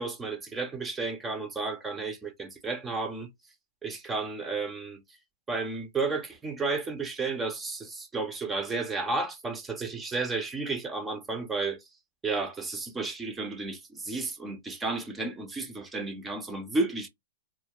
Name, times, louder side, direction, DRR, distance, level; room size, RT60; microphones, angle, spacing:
voice 1, 0.0-3.3 3.8-5.0 5.5-11.8 12.2-17.1, right 3 dB, 10° right, 0.5 m, -32 dB
2.2 x 2.1 x 2.8 m
hypercardioid pair, 155°, 0 cm